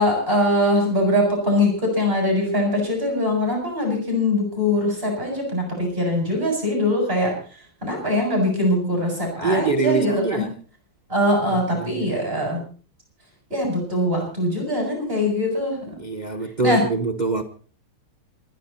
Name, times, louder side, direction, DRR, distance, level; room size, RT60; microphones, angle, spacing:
voice 1, 0.0-7.4 7.8-10.5 11.1-12.6 13.5-16.0 16.6-16.9, left 1 dB, 25° right, 7.7 m, -22 dB
voice 2, 9.4-10.5 11.5-12.1 16.0-17.4, right 4 dB, 50° right, 0.5 m, -24 dB
27.5 x 10.5 x 4.3 m
omnidirectional pair, 2.3 m